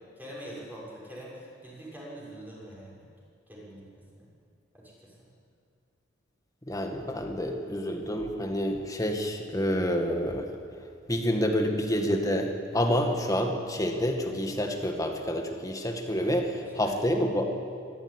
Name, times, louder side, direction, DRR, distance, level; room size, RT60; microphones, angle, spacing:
voice 1, 0.2-1.4 1.6-3.0 3.5-4.2 16.4-16.6 16.8-16.9, right 1 dB, 10° right, -5 dB, 6.4 m, -44 dB
voice 2, 6.7-10.5 11.1-17.5, equal, 15° left, 3 dB, 2.0 m, -28 dB
24.0 x 14.5 x 9.9 m, 2.3 s
head